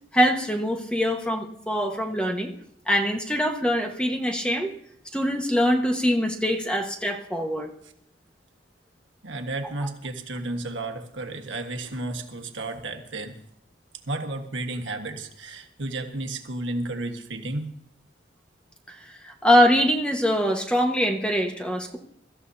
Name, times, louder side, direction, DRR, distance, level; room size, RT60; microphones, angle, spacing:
voice 1, 0.1-2.5 2.9-4.7 5.1-7.7 19.2-22.0, equal, 5° left, 2 dB, 1.4 m, -23 dB
voice 2, 9.2-13.4 14.1-17.7, right 2 dB, 80° right, 5 dB, 1.5 m, -32 dB
23.5 x 14.0 x 2.8 m, 0.70 s
head